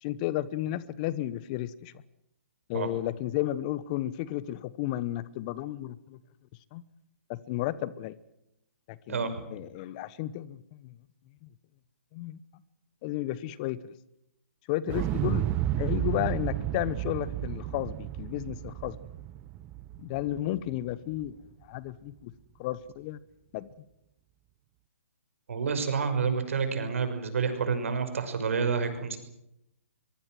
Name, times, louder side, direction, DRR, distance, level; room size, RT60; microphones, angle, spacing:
voice 1, 0.0-1.9 2.7-6.2 6.7-6.8 7.3-8.1 8.9-11.0 11.4-11.5 12.1-12.4 13.0-13.9 14.7-15.4 15.8-19.0 20.0-21.4 21.6-22.3 22.6-23.2 23.5-23.7, left 14 dB, 35° left, 19 dB, 1.0 m, -33 dB
voice 2, 9.1-9.5 15.0-15.1 25.5-29.2, right 5 dB, 65° right, 9 dB, 5.9 m, -29 dB
Explosion, 14.9-20.9 21.2-21.3, right 13 dB, 25° right, 0.8 m, -32 dB
23.5 x 23.5 x 7.8 m, 0.83 s
hypercardioid pair, 140°, 8 cm